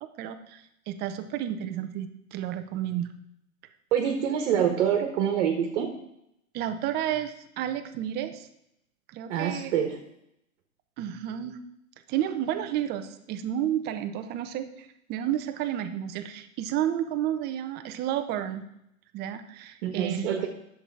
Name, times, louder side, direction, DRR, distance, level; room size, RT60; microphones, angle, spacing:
voice 1, 0.0-3.1 6.5-8.5 9.1-9.7 11.0-11.6 12.1-18.6 19.1-20.4, right 11 dB, 25° right, 9 dB, 0.7 m, -31 dB
voice 2, 3.9-5.9 9.3-10.0 19.8-20.5, right 8 dB, 50° right, 3 dB, 1.5 m, -26 dB
9.9 x 7.4 x 4.7 m, 0.79 s
hypercardioid pair, 130°, 43 cm